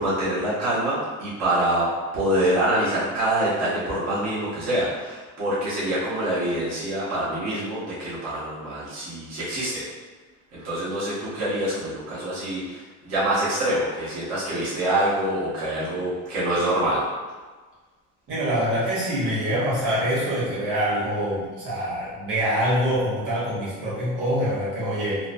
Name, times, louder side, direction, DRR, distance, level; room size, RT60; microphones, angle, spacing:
voice 1, 0.0-1.9 2.1-9.8 10.5-17.0, right 1 dB, 55° right, -10 dB, 1.1 m, -25 dB
voice 2, 18.3-25.2, equal, 80° right, -9 dB, 1.4 m, -25 dB
3.0 x 2.1 x 2.6 m, 1.4 s
cardioid pair, 110°, 33 cm